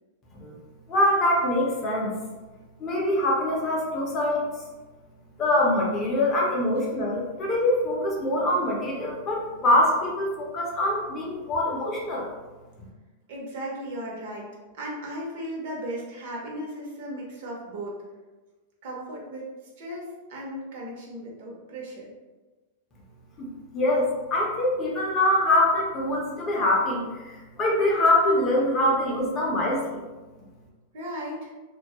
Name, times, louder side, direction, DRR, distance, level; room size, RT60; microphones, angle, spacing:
voice 1, 0.9-2.1 2.8-4.5 5.4-12.3 23.4-23.5 23.7-30.0, left 1 dB, 25° left, -3 dB, 0.5 m, -24 dB
voice 2, 13.3-14.5 14.8-18.0 18.8-19.5 19.8-22.1 30.9-31.5, right 1 dB, 55° right, -3 dB, 0.7 m, -36 dB
2.2 x 2.0 x 2.7 m, 1.2 s
supercardioid pair, 165°, 0 cm